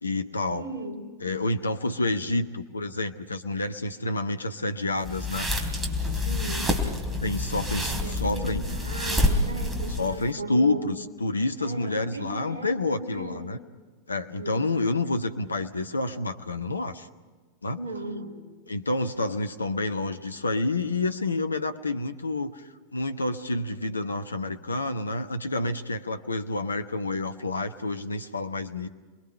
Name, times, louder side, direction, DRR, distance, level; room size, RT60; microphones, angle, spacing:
voice 1, 0.0-0.6 1.2-5.5 6.0-6.3 7.2-8.7 10.0-13.6 14.1-17.1 17.6-17.8 18.7-28.9, left 2 dB, 80° left, 8 dB, 1.0 m, -29 dB
voice 2, 0.5-1.1 6.3-6.9 7.7-10.8 11.6-13.5 14.4-14.6 17.7-18.5, right 1 dB, 70° right, 2 dB, 4.7 m, -37 dB
sound 1, 5.0-10.3, left 1 dB, 15° right, 3.3 m, -28 dB
28.5 x 21.5 x 5.5 m, 1.4 s
figure-of-eight pair, 90°, 0 cm